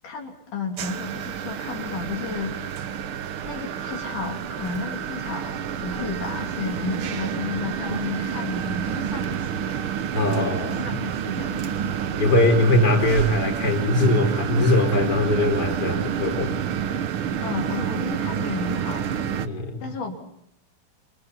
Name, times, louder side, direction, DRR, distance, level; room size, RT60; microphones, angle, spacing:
voice 1, 0.0-2.6 3.4-9.8 10.1-12.0 17.4-19.2 19.8-20.1, left 4 dB, 90° left, 1 dB, 4.8 m, -33 dB
sound 1, 0.8-19.5, right 8 dB, 60° right, 1.4 m, -29 dB
voice 2, 10.1-11.0 12.2-16.6 19.4-19.8, left 1 dB, 30° left, 2 dB, 4.9 m, -21 dB
28.5 x 26.5 x 4.2 m, 0.73 s
omnidirectional pair, 3.5 m